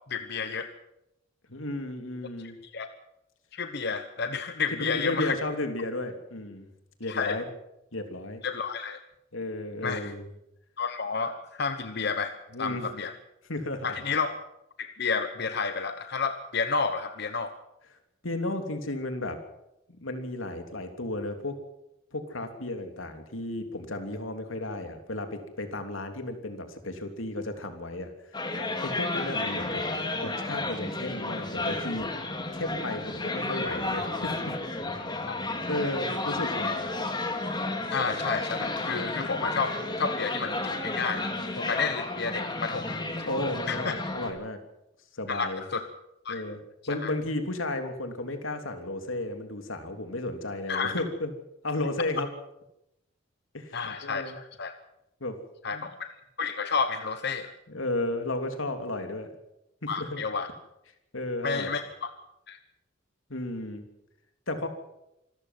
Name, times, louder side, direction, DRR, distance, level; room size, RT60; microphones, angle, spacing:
voice 1, 0.1-0.7 2.7-2.9 3.5-5.3 7.1-7.4 8.4-9.0 9.8-10.1 10.8-13.1 13.8-14.3 14.8-17.5 35.3-35.4 37.9-43.0 43.7-43.9 45.3-45.9 46.2-46.4 47.0-47.1 50.7-50.9 53.7-54.7 55.6-56.1 56.4-57.5 59.9-60.5 61.4-62.1 62.5-62.6, left 5 dB, 55° left, 9 dB, 1.1 m, -31 dB
voice 2, 1.5-2.6 4.8-6.7 7.0-7.5 7.9-8.4 9.3-10.2 12.5-12.9 13.5-14.0 18.2-19.4 20.0-21.6 22.1-28.1 28.4-29.8 30.2-32.1 32.5-34.6 35.4-36.7 43.3-44.6 45.1-45.6 46.3-46.6 46.9-51.3 51.6-52.3 53.5-54.4 55.2-55.4 55.7-55.8 57.7-59.3 59.8-60.2 61.1-61.7 63.3-63.8 64.5-64.7, left 2 dB, 90° left, 6 dB, 3.2 m, -33 dB
sound 1, 28.3-44.3, left 2 dB, 20° left, 2.7 m, -32 dB
26.0 x 14.0 x 7.8 m, 0.87 s
head